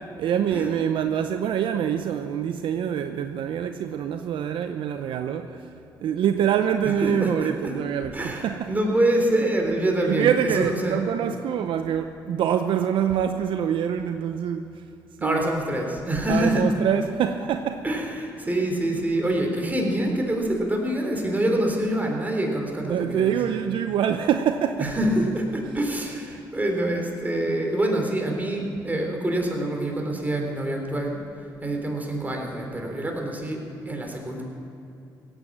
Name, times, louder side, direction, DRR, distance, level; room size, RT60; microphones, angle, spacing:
voice 1, 0.0-5.7 6.0-8.7 10.0-14.7 15.2-15.5 16.3-17.8 22.8-24.9, right 9 dB, 70° right, 7 dB, 0.7 m, -25 dB
voice 2, 6.8-7.8 8.1-11.0 15.2-16.6 17.8-23.3 24.8-31.2 31.6-33.6 33.9-34.4, right 1 dB, 20° right, 1 dB, 3.6 m, -26 dB
17.0 x 9.1 x 7.4 m, 2.7 s
supercardioid pair, 65°, 9 cm